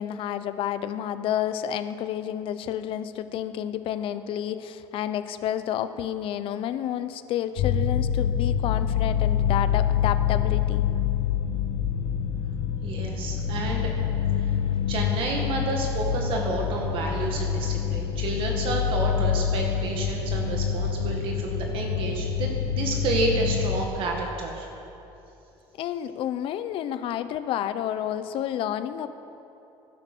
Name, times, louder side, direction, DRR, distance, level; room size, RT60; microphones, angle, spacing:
voice 1, 0.0-10.9 25.8-29.1, left 10 dB, 55° left, 11 dB, 0.8 m, -30 dB
sound 1, 7.6-23.8, left 8 dB, 75° left, 1.5 m, -26 dB
voice 2, 12.8-13.9 14.4-14.5 14.9-24.7, right 3 dB, 55° right, 0 dB, 2.0 m, -30 dB
20.0 x 11.5 x 6.2 m, 3.0 s
cardioid pair, 145°, 11 cm